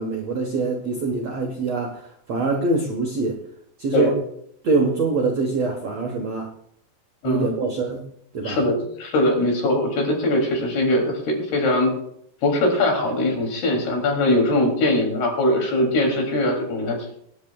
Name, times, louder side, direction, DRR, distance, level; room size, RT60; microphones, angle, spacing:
voice 1, 0.0-3.4 3.8-4.2 4.6-6.5 7.2-8.0 8.3-8.6, right 3 dB, 85° right, 0 dB, 1.4 m, -24 dB
voice 2, 8.4-11.9 12.4-17.0, left 1 dB, 60° left, 1 dB, 4.9 m, -21 dB
25.5 x 10.5 x 2.4 m, 0.72 s
omnidirectional pair, 5.3 m